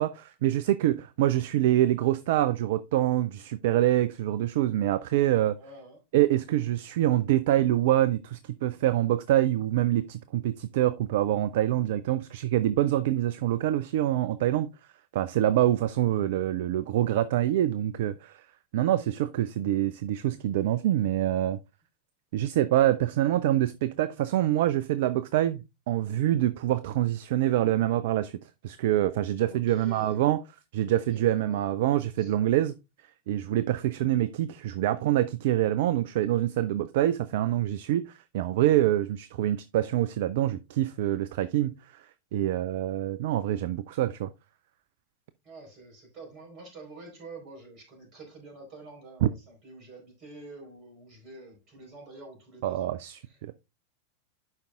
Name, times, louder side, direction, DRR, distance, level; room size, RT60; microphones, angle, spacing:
voice 1, 0.0-5.6 6.1-14.7 15.1-18.4 18.7-21.6 22.3-28.4 28.6-30.4 30.7-32.7 33.3-38.0 38.3-41.8 42.3-44.3 49.2-49.3 52.6-53.5, right 13 dB, 55° right, 0.4 m, -25 dB
voice 2, 5.6-6.0 15.6-15.9 29.4-30.3 30.8-31.7 32.2-32.3 45.4-53.4, right 3 dB, 35° right, 4.4 m, -48 dB
11.5 x 5.2 x 2.4 m
figure-of-eight pair, 90°, 0 cm